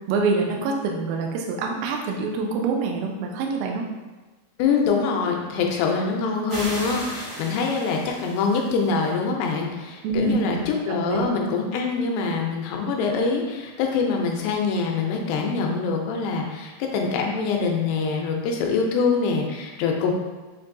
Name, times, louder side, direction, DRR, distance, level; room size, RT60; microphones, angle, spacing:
voice 1, 0.1-3.9 10.0-11.3, right 4 dB, 90° right, 1 dB, 2.0 m, -26 dB
voice 2, 4.6-20.1, left 4 dB, 80° left, 1 dB, 2.7 m, -24 dB
sound 1, 6.5-9.1, right 1 dB, 70° right, 1.0 m, -36 dB
6.7 x 2.6 x 2.6 m, 1.2 s
omnidirectional pair, 4.8 m